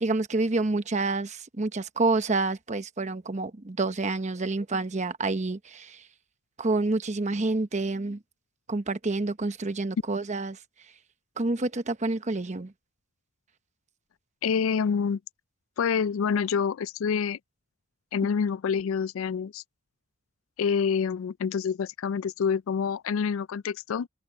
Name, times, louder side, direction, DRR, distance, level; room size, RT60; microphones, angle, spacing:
voice 1, 0.0-6.0 6.6-8.2 8.7-10.6 11.4-12.7, right 3 dB, 35° right, 0.9 m, -28 dB
voice 2, 14.4-15.2 15.8-17.4 18.1-19.6 20.6-24.1, left 6 dB, 85° left, 0.4 m, -27 dB
head